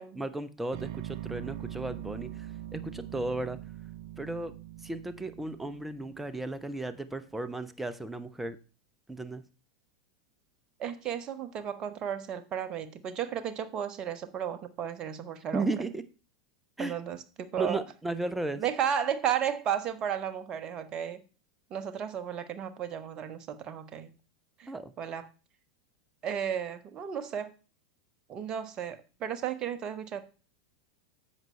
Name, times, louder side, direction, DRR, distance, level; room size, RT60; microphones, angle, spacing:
voice 1, 0.1-2.5 2.7-3.6 4.2-4.5 4.8-8.6 9.1-9.4 15.5-16.0 16.8-17.0 17.6-18.6 24.7-24.9, right 2 dB, 5° right, 0.8 m, -35 dB
sound 1, 0.7-6.8, right 13 dB, 55° right, 0.6 m, -42 dB
voice 2, 10.8-15.7 16.8-17.8 18.6-21.2 21.7-24.1 24.6-24.7 25.0-25.3 26.2-27.5 28.3-30.2, right 9 dB, 35° right, 1.0 m, -33 dB
10.5 x 7.5 x 3.3 m
figure-of-eight pair, 85°, 3 cm